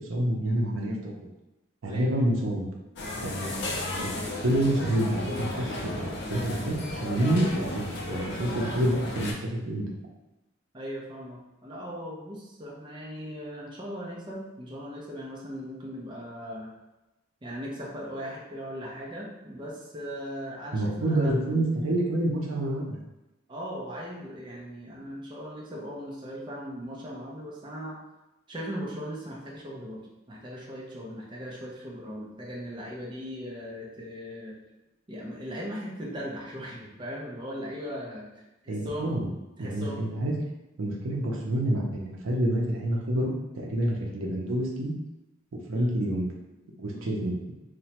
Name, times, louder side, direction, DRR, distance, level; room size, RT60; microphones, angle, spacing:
voice 1, 0.1-1.1 1.8-2.7 3.2-4.1 4.4-9.9 20.7-23.0 38.7-39.3 39.6-40.3 40.8-44.9 45.7-46.3 46.8-47.5, right 1 dB, 75° right, -1 dB, 0.5 m, -28 dB
voice 2, 1.9-2.2 3.4-3.6 10.7-16.7 17.4-21.4 23.5-28.0 28.5-34.6 35.1-39.1 39.6-40.0 45.7-45.9 46.9-47.1, equal, 25° right, -4 dB, 0.5 m, -38 dB
sound 1, 3.0-9.3, left 1 dB, 55° left, 0.5 m, -34 dB
3.0 x 2.1 x 2.8 m, 1.0 s
head